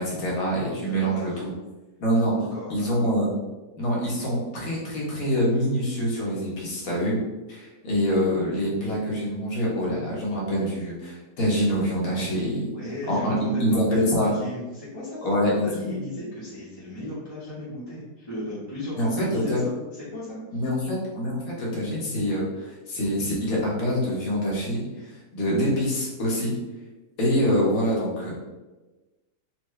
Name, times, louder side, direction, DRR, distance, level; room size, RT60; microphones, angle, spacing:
voice 1, 0.0-1.5 2.0-2.3 2.7-3.3 3.8-7.2 7.5-12.7 13.1-14.3 15.2-15.7 19.0-19.6 20.5-26.5 27.2-28.3, equal, 60° left, -5 dB, 1.5 m, -25 dB
voice 2, 0.7-1.4 2.4-3.2 12.7-20.6, left 1 dB, 20° left, -12 dB, 1.1 m, -36 dB
4.5 x 2.7 x 3.2 m, 1.2 s
omnidirectional pair, 1.7 m